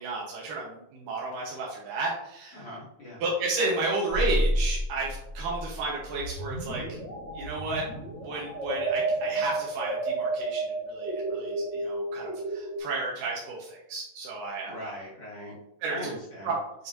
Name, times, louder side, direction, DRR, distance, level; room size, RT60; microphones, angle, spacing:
voice 1, 0.0-2.7 3.2-6.8 7.3-7.8 8.2-14.9 15.8-16.1 16.4-16.5, right 3 dB, 85° right, -3 dB, 2.7 m, -32 dB
voice 2, 2.5-3.2 14.7-15.6 15.9-16.5, left 1 dB, 45° left, -8 dB, 2.4 m, -40 dB
sound 1, 4.1-12.8, right 2 dB, 50° right, 1.4 m, -31 dB
8.1 x 5.0 x 2.6 m, 0.83 s
omnidirectional pair, 3.8 m